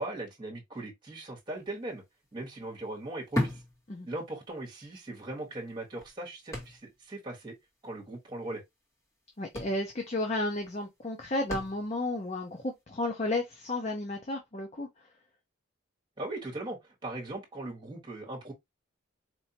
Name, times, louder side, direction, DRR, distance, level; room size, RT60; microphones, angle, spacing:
voice 1, 0.0-2.0 2.3-3.6 4.0-7.5 7.8-8.6 16.2-18.5, right 2 dB, 25° right, 1.4 m, -39 dB
sound 1, 1.6-1.7 2.0-4.6 4.9-5.0 5.7-7.2 7.4-7.5 7.8-8.0 8.9-9.1 9.3-12.2 12.8-12.9, left 1 dB, 15° left, 1.4 m, -37 dB
voice 2, 9.4-14.9, left 2 dB, 35° left, 0.7 m, -32 dB
4.5 x 2.7 x 2.8 m
head